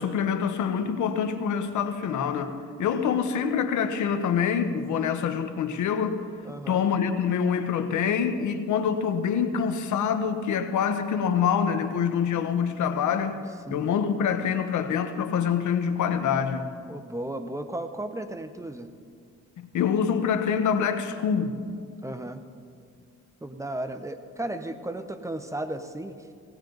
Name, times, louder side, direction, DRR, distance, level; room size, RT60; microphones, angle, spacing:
voice 1, 0.0-6.2 6.7-13.4 13.7-16.7 19.6-21.6, left 7 dB, 75° left, 1.2 m, -26 dB
voice 2, 6.4-6.8 13.7-13.9 16.9-19.0 22.0-22.4 23.4-26.1, right 1 dB, 10° right, 0.8 m, -34 dB
19.0 x 17.5 x 4.0 m
cardioid pair, 90°, 30 cm